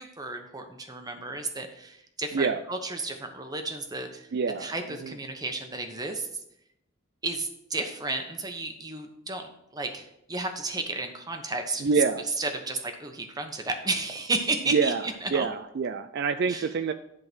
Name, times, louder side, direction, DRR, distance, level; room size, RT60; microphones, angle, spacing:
voice 1, 0.0-4.3 4.6-6.4 7.2-15.5 16.5-16.7, right 3 dB, 20° right, 5 dB, 1.0 m, -33 dB
voice 2, 4.3-4.7 5.0-5.1 11.8-12.2 14.7-15.0 15.3-16.9, right 5 dB, 55° right, 10 dB, 0.4 m, -26 dB
10.5 x 3.8 x 6.2 m, 0.79 s
head